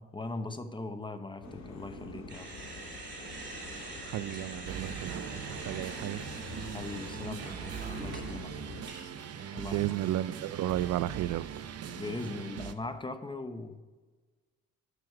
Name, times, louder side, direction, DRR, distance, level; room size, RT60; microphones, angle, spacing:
voice 1, 0.0-2.5 6.7-8.7 9.5-9.8 11.9-13.8, left 2 dB, 15° left, 9 dB, 0.9 m, -40 dB
sound 1, 1.4-8.9, left 2 dB, 75° left, 2.9 m, -46 dB
sound 2, 2.3-9.7, right 2 dB, 35° right, 2.7 m, -45 dB
voice 2, 4.0-6.2 9.6-11.5, right 13 dB, 70° right, 17 dB, 0.4 m, -33 dB
sound 3, 4.6-12.7, right 8 dB, 55° right, 0.8 m, -41 dB
9.9 x 6.6 x 4.6 m, 1.4 s
cardioid pair, 90°, 30 cm